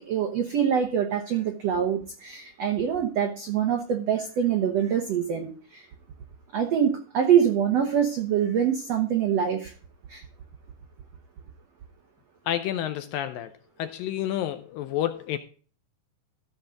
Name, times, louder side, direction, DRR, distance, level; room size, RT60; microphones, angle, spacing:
voice 1, 0.0-5.9 6.5-9.7 10.1-10.2, right 8 dB, 80° right, 4 dB, 1.4 m, -25 dB
voice 2, 12.5-13.5 13.8-15.4, left 11 dB, 80° left, 9 dB, 2.1 m, -29 dB
14.0 x 6.4 x 3.8 m, 0.40 s
omnidirectional pair, 4.5 m